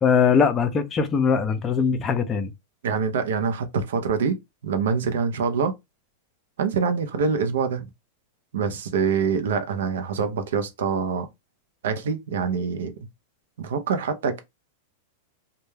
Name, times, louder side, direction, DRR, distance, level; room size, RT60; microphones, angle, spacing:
voice 1, 0.0-2.5, left 6 dB, 25° left, 0.4 m, -21 dB
voice 2, 2.8-4.4 4.6-5.7 6.6-7.9 8.5-11.3 11.8-12.9 13.6-14.4, right 5 dB, 80° right, 0.5 m, -25 dB
2.2 x 2.2 x 3.1 m
hypercardioid pair, 130°, 0 cm